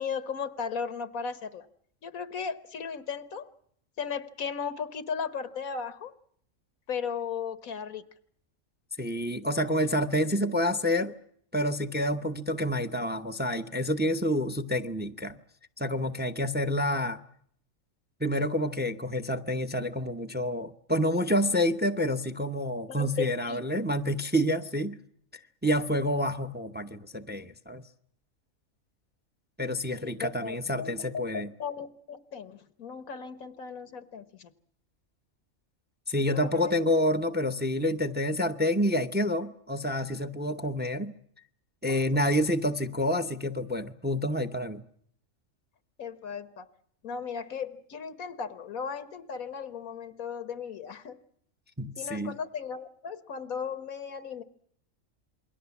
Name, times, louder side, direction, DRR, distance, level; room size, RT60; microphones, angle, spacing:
voice 1, 0.0-1.7 2.0-3.5 4.0-6.1 6.9-8.0 22.9-23.6 29.9-34.5 36.3-36.8 41.9-42.1 46.0-46.7 47.0-51.2 52.0-54.4, left 6 dB, 90° left, 1.7 m, -36 dB
voice 2, 9.0-11.1 11.5-15.4 15.8-17.2 18.2-25.0 25.6-27.8 29.6-31.5 36.1-41.1 41.8-44.8 51.8-52.3, equal, 10° right, 0.7 m, -28 dB
28.0 x 22.0 x 7.2 m
omnidirectional pair, 1.4 m